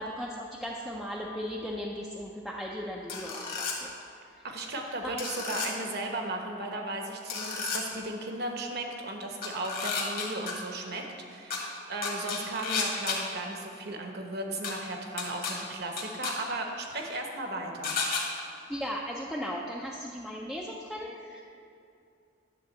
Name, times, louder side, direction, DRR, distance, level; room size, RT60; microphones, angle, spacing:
voice 1, 0.0-3.9 5.0-5.2 18.3-21.4, equal, ahead, -4 dB, 0.5 m, -37 dB
sound 1, 3.1-3.7 5.2-5.7 7.3-7.8 9.4-10.5 11.5-11.6 12.0-13.2 14.6-14.7 15.2-15.5 16.0-16.3 17.8-18.2, left 5 dB, 50° left, 1.5 m, -32 dB
voice 2, 4.4-17.9, right 2 dB, 55° right, 2 dB, 1.0 m, -36 dB
10.0 x 3.7 x 7.3 m, 2.5 s
head